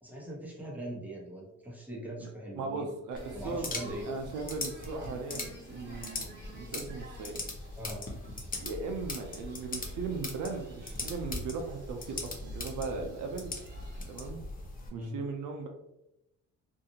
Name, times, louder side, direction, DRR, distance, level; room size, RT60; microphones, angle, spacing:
voice 1, 0.0-2.9 3.3-4.1 7.8-8.0 14.9-15.2, right 1 dB, 5° right, -4 dB, 1.0 m, -41 dB
voice 2, 2.5-7.4 8.6-13.5 14.1-14.4 14.9-15.7, right 4 dB, 80° right, 4 dB, 0.5 m, -38 dB
sound 1, 3.1-14.3, right 1 dB, 35° right, 1.1 m, -53 dB
sound 2, 3.2-14.9, left 3 dB, 30° left, 0.6 m, -40 dB
2.6 x 2.4 x 2.7 m, 0.86 s
cardioid pair, 90°, 30 cm